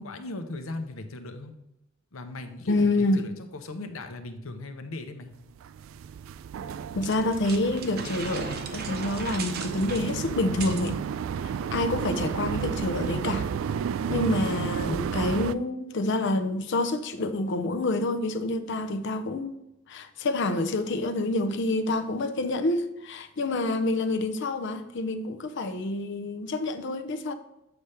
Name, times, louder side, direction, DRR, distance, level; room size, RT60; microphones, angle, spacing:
voice 1, 0.0-1.5 2.1-5.3, left 2 dB, 80° left, 0.8 m, -38 dB
voice 2, 2.7-3.3 6.9-11.0 11.4-13.5 14.1-19.6 19.9-27.3, left 2 dB, 60° left, 0.6 m, -27 dB
sound 1, 5.6-15.5, right 7 dB, 70° right, 0.3 m, -32 dB
sound 2, 7.0-10.9, right 5 dB, 50° right, 0.8 m, -38 dB
7.9 x 3.4 x 5.6 m
head